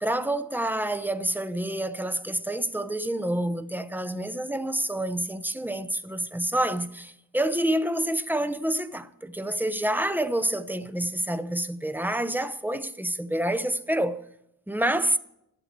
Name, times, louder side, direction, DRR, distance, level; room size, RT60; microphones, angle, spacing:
voice 1, 0.0-14.2 14.7-15.2, right 1 dB, 5° right, 0.7 m, -28 dB
12.0 x 7.9 x 8.8 m
wide cardioid pair, 80°, 37 cm